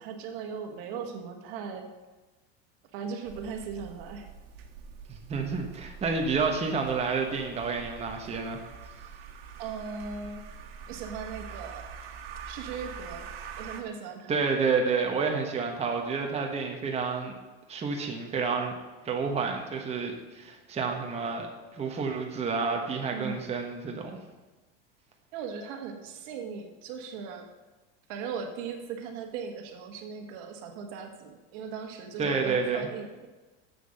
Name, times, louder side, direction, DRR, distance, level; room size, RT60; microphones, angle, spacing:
voice 1, 0.0-1.9 2.9-4.3 9.6-10.4 10.9-11.9 12.4-13.3 13.6-14.4 23.1-23.4 25.3-27.5 28.1-33.3, right 5 dB, 65° right, 5 dB, 1.6 m, -38 dB
sound 1, 3.2-13.8, right 6 dB, 90° right, 1.5 m, -45 dB
voice 2, 5.1-8.6 14.3-17.3 17.7-18.7 19.0-24.2 32.2-32.9, right 5 dB, 20° right, 2 dB, 1.3 m, -29 dB
7.8 x 7.7 x 6.6 m, 1.2 s
supercardioid pair, 135°, 29 cm